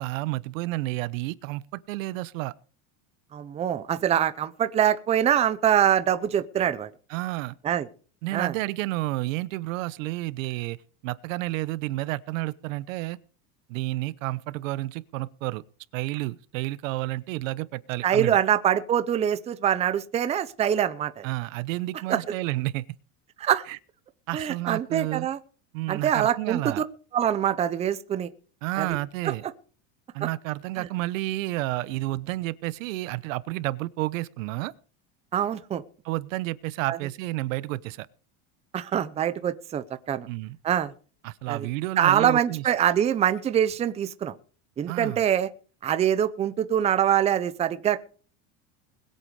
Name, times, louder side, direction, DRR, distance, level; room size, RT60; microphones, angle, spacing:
voice 1, 0.0-2.5 7.1-7.6 8.2-10.8 11.0-13.2 13.7-15.6 15.9-18.4 21.2-22.8 23.7-23.8 24.3-25.3 25.7-26.9 28.6-29.4 30.1-34.7 36.0-38.1 40.3-40.6 41.2-42.6 44.9-45.2, right 18 dB, 80° right, 1.0 m, -30 dB
voice 2, 3.3-6.9 7.6-7.9 8.3-8.5 18.0-21.3 22.1-22.2 23.4-23.7 24.3-25.4 25.9-26.8 27.1-28.3 28.8-29.0 29.2-29.3 30.8-30.9 35.3-35.8 36.9-37.0 38.7-40.3 40.6-40.9 41.5-41.7 42.0-44.4 44.8-45.5 45.8-48.0, right 10 dB, 15° right, 0.7 m, -24 dB
21.0 x 8.3 x 4.8 m
cardioid pair, 165°, 38 cm